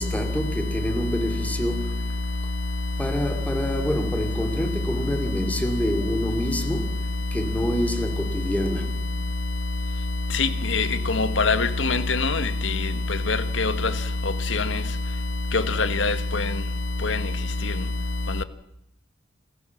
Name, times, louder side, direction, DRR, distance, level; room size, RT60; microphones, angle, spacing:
voice 1, 0.0-2.0 3.0-7.0 7.3-8.9, equal, 10° left, 2.5 m, -27 dB
voice 2, 10.4-10.9 11.1-12.4 13.3-13.7 14.5-14.6 15.5-16.4 17.0-17.2, left 4 dB, 75° left, 1.5 m, -23 dB
27.5 x 15.5 x 7.2 m
head